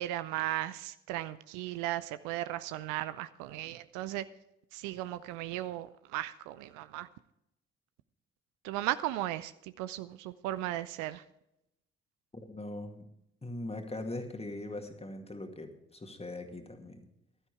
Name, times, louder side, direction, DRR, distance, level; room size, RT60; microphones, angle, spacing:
voice 1, 0.0-4.3 4.7-7.1 8.6-11.2, right 15 dB, 65° right, 14 dB, 0.6 m, -36 dB
voice 2, 12.3-13.1 13.4-17.0, left 2 dB, 20° left, 5 dB, 2.1 m, -41 dB
15.5 x 12.5 x 3.3 m, 0.82 s
figure-of-eight pair, 40°, 34 cm